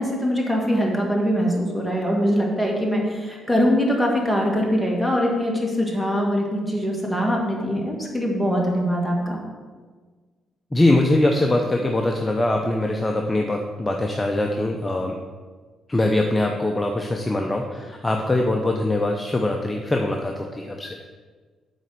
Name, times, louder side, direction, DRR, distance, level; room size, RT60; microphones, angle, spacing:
voice 1, 0.0-9.4, equal, 5° right, -1 dB, 1.9 m, -22 dB
voice 2, 10.7-15.2 15.9-21.0, left 1 dB, 15° left, 2 dB, 0.7 m, -22 dB
8.1 x 4.2 x 6.7 m, 1.4 s
cardioid pair, 90°, 0 cm